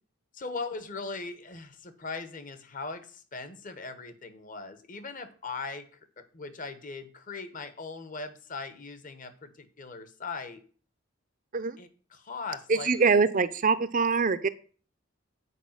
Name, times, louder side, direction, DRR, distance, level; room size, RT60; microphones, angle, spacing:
voice 1, 0.3-5.8 6.2-10.6 11.8-12.9, left 4 dB, 40° left, 11 dB, 1.1 m, -39 dB
voice 2, 12.7-14.5, right 5 dB, 40° right, 12 dB, 0.5 m, -24 dB
8.4 x 4.8 x 7.3 m, 0.41 s
head